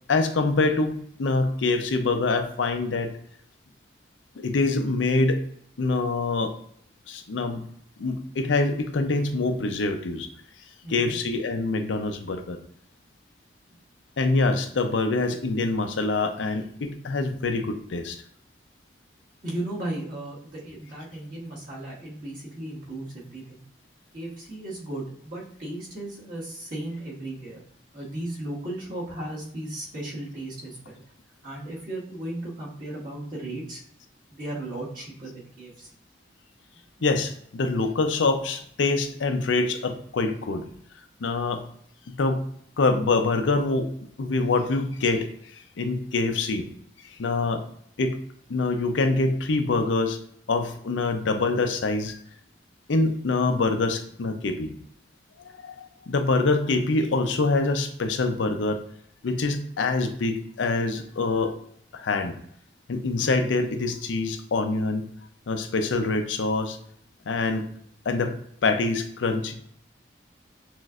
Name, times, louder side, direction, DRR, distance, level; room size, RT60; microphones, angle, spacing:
voice 1, 0.1-3.1 4.4-5.4 5.8-6.5 7.1-7.6 8.0-10.3 10.9-12.6 14.2-18.2 37.0-40.7 41.2-41.6 42.1-42.4 42.8-43.9 44.2-46.7 47.0-47.6 48.0-48.2 48.5-50.2 50.5-52.2 52.9-54.7 55.4-58.8 59.2-61.5 61.9-62.4 62.9-65.1 65.5-66.8 67.3-67.7 68.1-68.3 68.6-69.5, left 3 dB, 90° left, 6 dB, 0.5 m, -25 dB
voice 2, 10.8-11.2 19.4-23.6 24.1-27.6 27.9-31.0 31.4-33.8 34.3-35.9, right 1 dB, 50° right, -6 dB, 1.6 m, -35 dB
6.0 x 2.5 x 2.4 m, 0.66 s
head